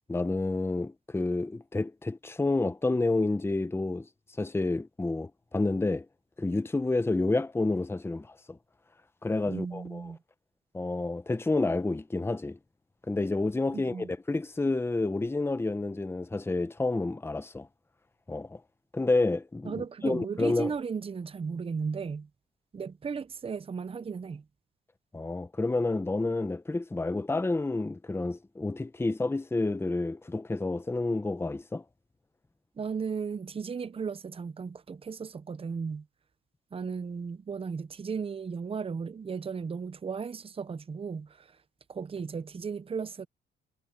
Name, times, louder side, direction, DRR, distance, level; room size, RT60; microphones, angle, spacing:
voice 1, 0.1-4.1 4.4-6.1 6.4-8.6 9.2-10.0 10.7-12.6 13.1-17.7 18.3-18.6 18.9-20.7 25.1-31.8, left 2 dB, 10° left, 0.9 m, -29 dB
voice 2, 9.5-10.2 13.7-14.1 19.6-22.3 22.7-24.4 32.8-36.1 36.7-41.6 41.9-43.3, right 5 dB, 30° right, 0.7 m, -35 dB
cardioid pair, 90°, 20 cm